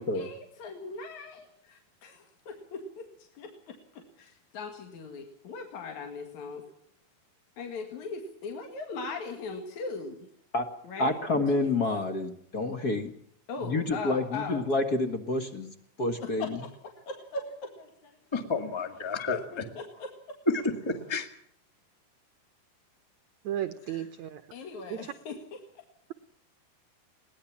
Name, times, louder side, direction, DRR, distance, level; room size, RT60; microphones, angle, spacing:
voice 1, 0.0-3.0 3.3-3.5 3.9-6.6 7.6-10.3 10.8-11.2 11.5-11.8 13.5-14.6 16.4-16.7 17.1-18.5 19.3-20.1 23.8-24.1 24.5-25.6, left 4 dB, 55° left, 3.1 m, -39 dB
voice 2, 11.0-13.1 13.6-16.6, left 2 dB, 75° left, 0.8 m, -29 dB
voice 3, 18.3-19.6 20.5-21.3, left 3 dB, 35° left, 0.4 m, -30 dB
voice 4, 23.4-24.4 24.9-25.0, right 11 dB, 80° right, 1.6 m, -34 dB
22.0 x 18.5 x 7.3 m
omnidirectional pair, 4.5 m